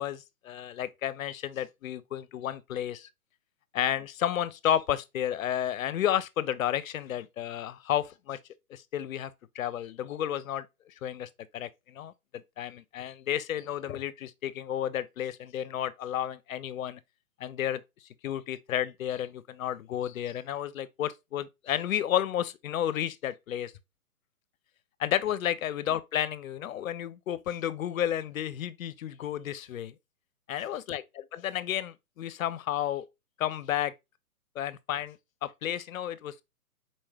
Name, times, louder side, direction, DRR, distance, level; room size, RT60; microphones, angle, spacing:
voice 1, 0.0-3.1 3.7-8.4 8.7-17.0 17.4-17.8 18.2-23.7 25.0-29.9 30.5-31.0 31.3-33.1 33.4-33.9 34.6-36.3, left 11 dB, 65° left, 0.5 m, -32 dB
4.2 x 3.1 x 2.2 m
hypercardioid pair, 140°, 45 cm